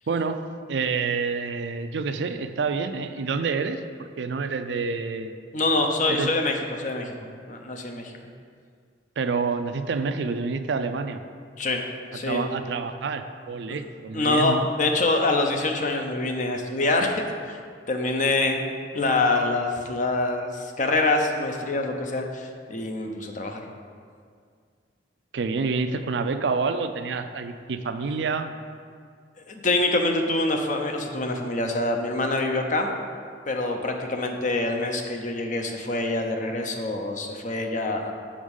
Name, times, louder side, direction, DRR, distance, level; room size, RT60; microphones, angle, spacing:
voice 1, 0.1-0.4 0.7-3.8 4.2-5.3 6.1-6.3 9.2-11.2 12.3-14.7 25.3-28.5, right 4 dB, 70° right, 9 dB, 0.4 m, -28 dB
voice 2, 5.5-8.1 11.6-11.8 12.1-12.5 14.1-17.6 17.9-18.6 18.9-23.6 29.5-32.9 33.5-38.1, left 2 dB, 45° left, 3 dB, 0.7 m, -25 dB
7.1 x 5.0 x 5.4 m, 2.1 s
head